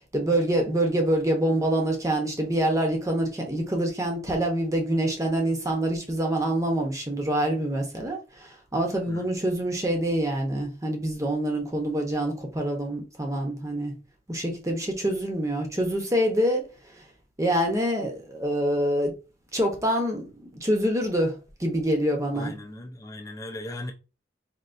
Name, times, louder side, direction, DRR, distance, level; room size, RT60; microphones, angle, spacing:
voice 1, 0.1-13.9 14.3-16.7 17.4-19.1 19.5-20.3 20.6-22.5, right 1 dB, 20° right, 0.9 m, -26 dB
voice 2, 22.3-23.9, left 1 dB, 20° left, 0.6 m, -38 dB
4.4 x 2.9 x 2.6 m
head